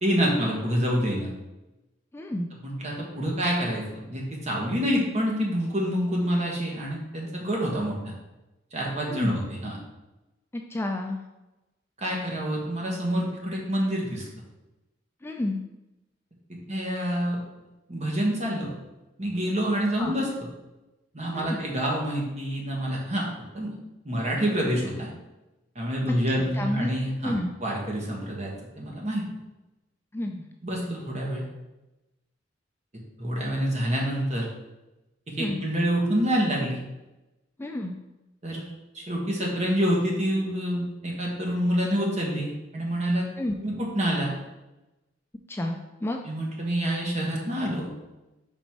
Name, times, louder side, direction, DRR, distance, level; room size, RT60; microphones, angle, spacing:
voice 1, 0.0-1.3 2.6-3.8 4.1-8.1 8.7-9.8 12.0-14.2 16.5-17.4 17.9-18.7 19.2-20.3 21.1-23.3 23.5-23.7 24.0-25.1 25.7-27.4 27.6-29.2 30.6-31.4 33.2-34.5 35.3-36.8 38.4-38.6 38.9-43.3 43.6-44.3 46.2-47.9, equal, 40° right, -2 dB, 1.6 m, -27 dB
voice 2, 2.1-2.5 9.1-9.4 10.5-11.2 15.2-15.6 20.0-20.1 21.3-21.6 26.1-26.2 26.6-26.9 27.2-27.5 30.1-30.4 35.4-35.6 37.6-37.9 43.4-43.5 45.5-46.2, left 1 dB, 15° left, 2 dB, 0.4 m, -30 dB
5.5 x 4.1 x 4.6 m, 1.0 s
head